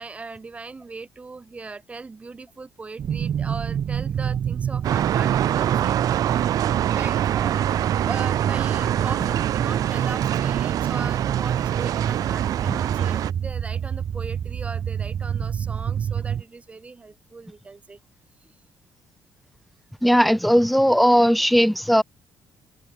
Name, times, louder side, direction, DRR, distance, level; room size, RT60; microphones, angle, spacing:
voice 1, 0.0-6.0 6.2-6.4 6.9-18.0, right 4 dB, 20° right, 3.4 m, -38 dB
sound 1, 3.0-16.4, right 8 dB, 40° right, 1.0 m, -27 dB
sound 2, 4.8-13.3, right 12 dB, 60° right, 2.8 m, -25 dB
voice 2, 20.0-22.0, equal, ahead, 1.1 m, -18 dB
cardioid pair, 155°, 7 cm